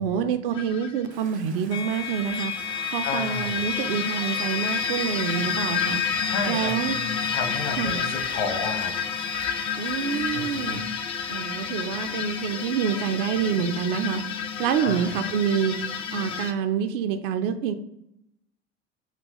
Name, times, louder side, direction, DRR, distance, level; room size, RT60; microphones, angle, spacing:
voice 1, 0.0-2.5 2.9-6.0 6.5-7.0 7.7-8.0 9.8-10.8 11.3-14.2 14.6-15.7 16.1-17.7, right 8 dB, 55° right, 8 dB, 0.5 m, -27 dB
sound 1, 0.5-1.0 1.9-16.5, left 7 dB, 15° left, 0.3 m, -32 dB
Rain, 1.1-10.8, right 4 dB, 75° right, 1.1 m, -48 dB
sound 2, 1.7-15.5, left 6 dB, 70° left, 0.8 m, -33 dB
voice 2, 3.0-3.6 6.2-8.9 10.3-10.8 14.8-15.1, left 4 dB, 50° left, 4 dB, 1.1 m, -32 dB
6.0 x 2.4 x 3.8 m, 0.78 s
figure-of-eight pair, 75°, 34 cm